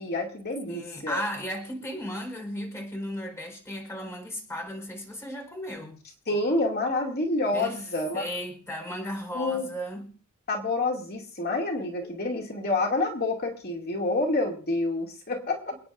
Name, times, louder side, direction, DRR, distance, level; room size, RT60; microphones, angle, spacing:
voice 1, 0.0-1.2 6.3-8.3 9.3-9.7 10.5-15.8, left 2 dB, 45° left, 1 dB, 2.4 m, -28 dB
voice 2, 0.7-6.0 7.5-7.8 8.1-10.1 12.0-12.1, equal, 15° left, 2 dB, 4.4 m, -35 dB
28.5 x 9.5 x 2.6 m, 0.40 s
head